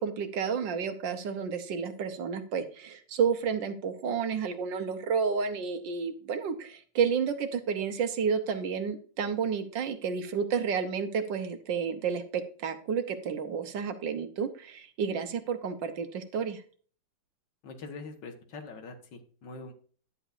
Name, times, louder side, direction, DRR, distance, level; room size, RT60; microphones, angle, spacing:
voice 1, 0.0-16.6, right 6 dB, 70° right, 9 dB, 1.6 m, -31 dB
voice 2, 17.6-19.7, left 3 dB, 65° left, 6 dB, 2.0 m, -43 dB
11.0 x 7.9 x 2.6 m, 0.42 s
omnidirectional pair, 2.1 m